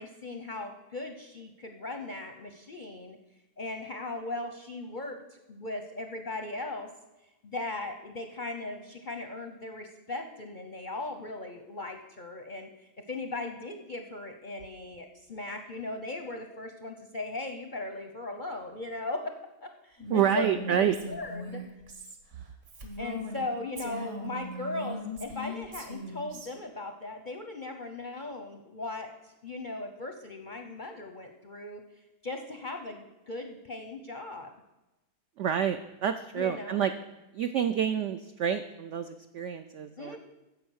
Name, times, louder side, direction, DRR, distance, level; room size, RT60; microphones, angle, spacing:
voice 1, 0.0-3.2 3.6-6.9 7.4-12.7 13.1-19.3 19.6-21.6 23.0-31.8 32.2-34.5 36.3-36.8 40.0-40.2, left 2 dB, 50° left, 5 dB, 0.6 m, -38 dB
Female speech woman speaking, 20.0-23.4 23.8-26.5, equal, 50° right, 1.6 m, -39 dB
voice 2, 20.1-21.0 35.4-36.9 37.3-40.2, right 9 dB, 75° right, 8 dB, 0.6 m, -28 dB
10.0 x 7.1 x 6.3 m, 1.0 s
omnidirectional pair, 1.8 m